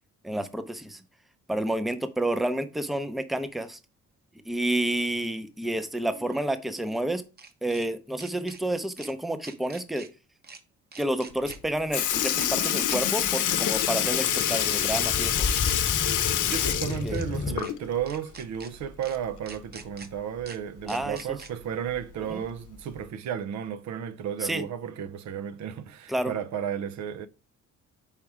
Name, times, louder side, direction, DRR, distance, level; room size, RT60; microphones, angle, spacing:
voice 1, 0.2-1.0 1.5-3.8 4.5-7.2 7.6-10.1 11.0-15.5 17.0-17.2 20.9-21.2 22.3-22.4 24.4-24.6 26.1-26.3, right 1 dB, ahead, 0.6 m, -29 dB
sound 1, 3.6-3.7 6.0-7.9 8.2-8.6 9.0-9.1 9.4-10.1 10.4-10.6 10.9-11.6 11.9-12.1 12.4-13.0 13.3-13.5 13.7-14.4 14.7-14.9 15.2-15.8 16.2-16.3 16.6-17.2 17.6-17.7 18.1-18.7 19.0-19.2 19.5-20.1 20.5-20.6 20.9-21.5, right 5 dB, 30° right, 0.9 m, -45 dB
Sink (filling or washing) / Liquid, 11.5-11.6 11.9-18.0 18.4-18.5 20.0-20.1 21.0-21.1 22.0-22.2 23.0-23.1, left 11 dB, 80° left, 0.8 m, -26 dB
sound 2, 14.0-17.6, left 4 dB, 30° left, 0.8 m, -32 dB
voice 2, 16.5-27.3, right 9 dB, 65° right, 0.6 m, -33 dB
5.0 x 4.1 x 4.7 m
cardioid pair, 90°, 30 cm